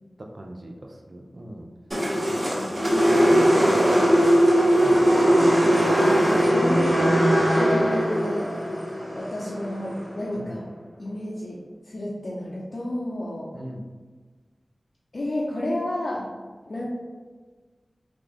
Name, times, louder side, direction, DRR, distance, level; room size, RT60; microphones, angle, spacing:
voice 1, 0.2-1.7 2.7-2.9 3.7-4.1 4.8-5.2 6.6-6.8 10.4-10.6 13.5-13.8, right 1 dB, 55° right, 2 dB, 0.5 m, -39 dB
sound 1, 1.9-10.2, equal, 35° right, 1.2 m, -20 dB
voice 2, 2.6-4.1 6.0-7.2 7.5-8.5 9.1-10.7 11.0-11.6 11.9-13.5 15.1-16.3 16.7-16.9, left 1 dB, 65° left, -7 dB, 0.6 m, -31 dB
3.1 x 2.5 x 3.7 m, 1.4 s
wide cardioid pair, 60°, 0 cm